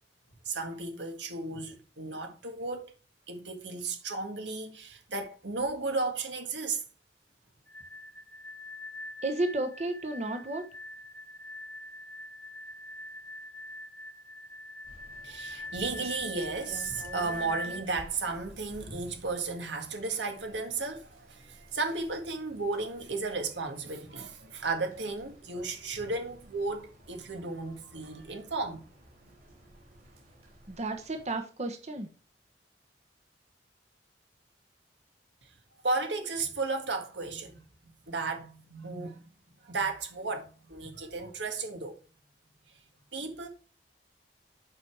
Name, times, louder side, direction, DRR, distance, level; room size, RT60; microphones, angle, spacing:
voice 1, 0.5-3.0 3.3-6.8 15.2-28.9 35.8-37.6 38.1-39.3 39.6-42.0 43.1-43.5, right 3 dB, 85° right, 1.8 m, -34 dB
sound 1, 7.7-17.9, left 1 dB, 10° left, 1.2 m, -43 dB
voice 2, 9.2-10.6 30.7-32.1, right 2 dB, 40° right, 1.1 m, -32 dB
Rain, 14.8-31.4, right 1 dB, 55° right, 3.9 m, -53 dB
8.2 x 5.2 x 4.7 m
head